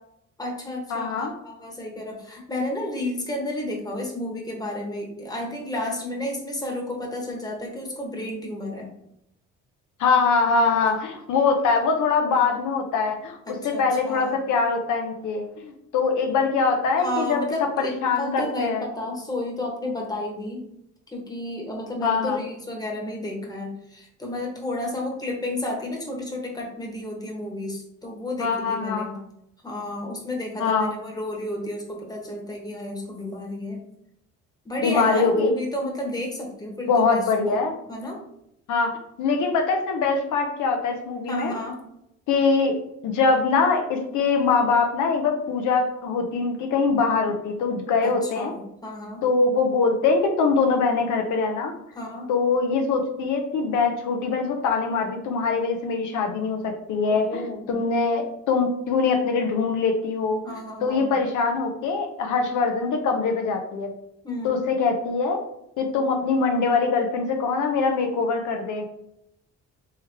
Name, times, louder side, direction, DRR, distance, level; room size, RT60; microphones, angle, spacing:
voice 1, 0.4-8.9 10.8-11.0 13.4-14.4 17.0-20.6 21.1-29.2 29.6-33.9 34.6-37.6 37.9-38.2 41.3-41.8 48.0-49.2 51.9-52.3 57.1-57.7 60.4-61.1 64.2-64.6, left 1 dB, 15° left, -1 dB, 1.2 m, -32 dB
voice 2, 0.9-1.3 10.0-17.4 17.8-18.8 22.0-22.4 28.4-29.1 30.6-30.9 34.8-35.5 36.9-37.7 38.7-38.9 39.2-41.5 42.3-42.7 43.0-48.5 49.2-51.7 52.3-60.4 60.8-63.9 64.4-65.4 65.8-68.9, left 4 dB, 80° left, 4 dB, 0.7 m, -23 dB
3.4 x 3.2 x 3.4 m, 0.78 s
cardioid pair, 90°, 30 cm